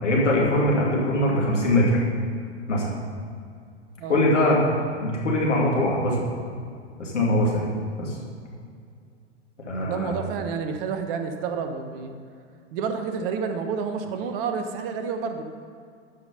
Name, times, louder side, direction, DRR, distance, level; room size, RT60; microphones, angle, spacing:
voice 1, 0.0-2.0 2.7-2.9 4.1-4.6 5.0-6.3 7.0-7.7 8.0-8.1 9.7-10.1, left 1 dB, 80° left, -4 dB, 2.8 m, -22 dB
voice 2, 9.8-12.1 12.7-15.4, right 6 dB, 50° right, 7 dB, 1.1 m, -29 dB
12.5 x 5.3 x 5.6 m, 2.3 s
figure-of-eight pair, 95°, 36 cm